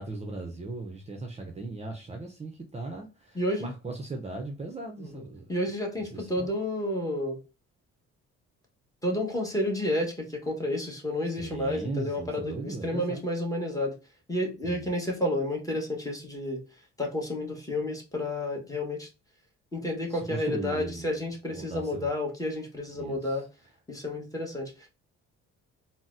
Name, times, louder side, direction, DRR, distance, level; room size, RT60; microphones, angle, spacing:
voice 1, 0.0-5.5 6.0-6.5 11.3-13.3 14.6-14.9 20.1-21.1 21.5-22.1 22.9-23.5, right 3 dB, 20° right, 0.5 m, -38 dB
voice 2, 3.3-3.7 5.0-5.2 5.5-7.4 9.0-13.9 14.3-16.6 17.0-19.1 19.7-23.5 23.9-24.7, left 1 dB, 10° left, 1.1 m, -30 dB
3.9 x 2.0 x 2.5 m
cardioid pair, 90°, 30 cm